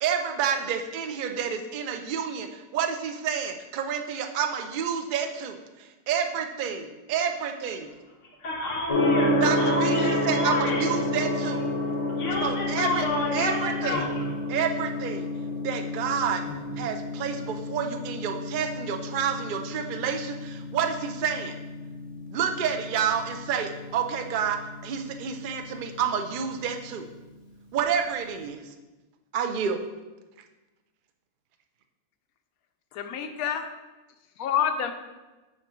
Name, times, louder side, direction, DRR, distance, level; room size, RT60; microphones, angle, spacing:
voice 1, 0.0-7.9 9.4-11.6 12.4-13.1 13.3-14.1 14.5-15.3 15.6-16.4 16.8-21.6 22.3-27.1 27.7-28.6 29.3-29.8, right 7 dB, 75° right, 5 dB, 0.4 m, -29 dB
voice 2, 8.2-10.9 12.2-14.3, left 2 dB, 60° left, -2 dB, 1.4 m, -30 dB
Gong, 8.9-26.8, left 1 dB, 25° left, 1.6 m, -30 dB
voice 3, 32.9-33.6 34.4-34.9, left 8 dB, 80° left, 7 dB, 1.0 m, -27 dB
5.9 x 4.2 x 4.4 m, 1.1 s
omnidirectional pair, 1.5 m